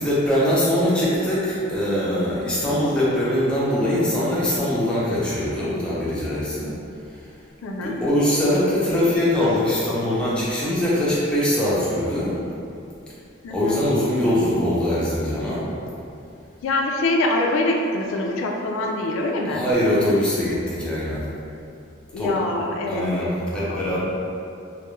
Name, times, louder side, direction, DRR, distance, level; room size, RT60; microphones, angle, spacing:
voice 1, 0.0-6.7 7.1-7.2 7.8-12.3 13.5-15.6 19.5-21.3 22.2-22.3 22.9-24.0, left 1 dB, 5° left, -9 dB, 0.5 m, -22 dB
voice 2, 7.6-8.0 13.4-13.8 16.6-19.6 22.1-23.1 23.6-23.8, left 2 dB, 90° left, 0 dB, 0.3 m, -24 dB
2.2 x 2.1 x 3.0 m, 2.6 s
head